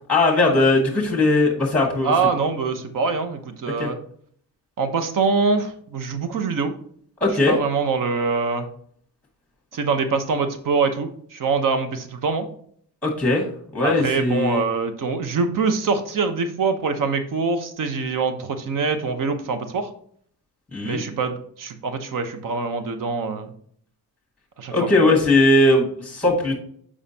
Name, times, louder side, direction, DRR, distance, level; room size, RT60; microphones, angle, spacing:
voice 1, 0.1-2.1 3.8-3.9 7.2-7.6 13.0-13.4 13.7-14.6 20.7-21.0 24.7-26.5, left 2 dB, 5° left, 0 dB, 1.4 m, -19 dB
voice 2, 2.0-4.0 4.8-6.7 7.5-8.7 9.7-12.5 13.8-19.9 20.8-23.5 24.6-24.9, right 4 dB, 55° right, 8 dB, 0.9 m, -24 dB
7.1 x 4.9 x 2.8 m, 0.62 s
wide cardioid pair, 155°, 37 cm